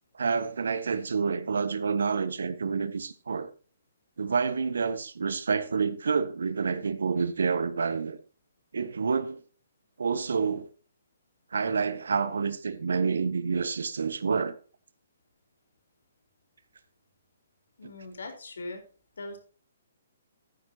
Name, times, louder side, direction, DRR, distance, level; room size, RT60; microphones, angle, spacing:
voice 1, 0.2-3.5 4.2-8.2 8.7-9.4 10.0-10.7 11.5-14.5 17.8-17.9, right 5 dB, 80° right, 1.4 m, -28 dB
voice 2, 17.8-18.8 19.2-19.4, left 2 dB, 75° left, 4.3 m, -40 dB
13.5 x 11.0 x 2.9 m
hypercardioid pair, 140°, 0 cm